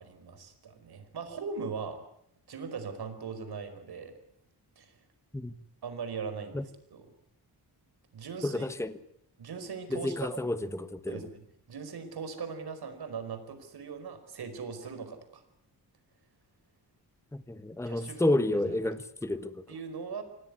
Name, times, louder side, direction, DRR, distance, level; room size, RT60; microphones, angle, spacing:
voice 1, 0.0-2.0 2.5-4.1 4.8-4.9 5.8-7.0 8.1-8.7 9.4-10.4 11.1-11.4 11.7-15.4 17.8-18.4 18.6-18.8 19.7-20.2, right 5 dB, 70° right, 9 dB, 4.9 m, -39 dB
voice 2, 8.4-8.9 9.9-11.2 17.3-19.6, left 1 dB, 5° left, 12 dB, 1.2 m, -30 dB
26.5 x 18.0 x 9.7 m, 0.75 s
wide cardioid pair, 115°, 39 cm